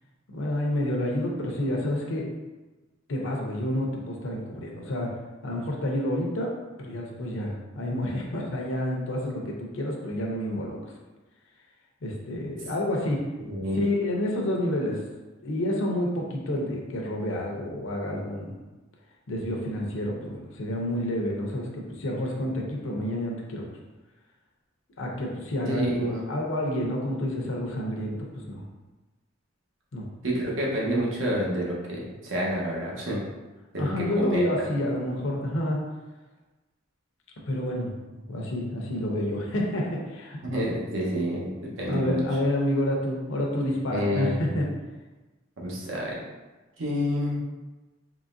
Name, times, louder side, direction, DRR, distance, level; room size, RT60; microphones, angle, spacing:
voice 1, 0.3-2.3 3.1-5.1 5.4-6.5 6.8-10.8 12.0-13.3 13.5-15.0 15.4-18.5 19.3-23.7 25.0-25.9 26.3-28.2 28.4-28.6 29.9-30.1 33.8-35.8 37.5-40.4 41.9-44.7, left 1 dB, 75° left, -1 dB, 0.7 m, -29 dB
voice 2, 13.4-13.8 25.7-26.2 30.2-33.2 33.7-33.9 34.2-34.4 40.4-42.2 43.9-44.6 45.6-46.2 46.8-47.4, equal, 70° right, -4 dB, 0.9 m, -28 dB
3.8 x 3.0 x 2.5 m, 1.2 s
head